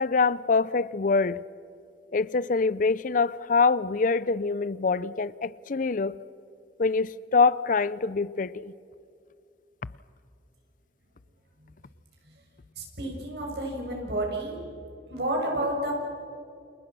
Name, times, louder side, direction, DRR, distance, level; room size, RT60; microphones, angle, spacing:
voice 1, 0.0-1.4 2.1-6.1 6.8-8.7, left 4 dB, 50° left, 0.5 m, -25 dB
voice 2, 12.8-14.6 15.1-15.9, right 1 dB, 65° right, 7.1 m, -30 dB
30.0 x 27.0 x 6.2 m
head